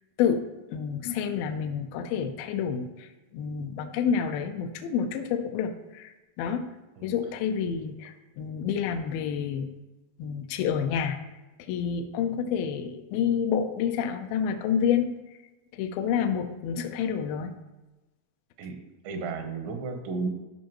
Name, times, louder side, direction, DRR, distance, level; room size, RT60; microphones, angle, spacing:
voice 1, 0.2-6.7 7.0-9.7 10.2-11.2 11.7-15.1 15.7-17.5, left 7 dB, 85° left, 5 dB, 2.1 m, -29 dB
voice 2, 19.0-20.3, right 4 dB, 90° right, 5 dB, 3.2 m, -33 dB
12.5 x 5.4 x 3.0 m, 1.1 s
omnidirectional pair, 4.9 m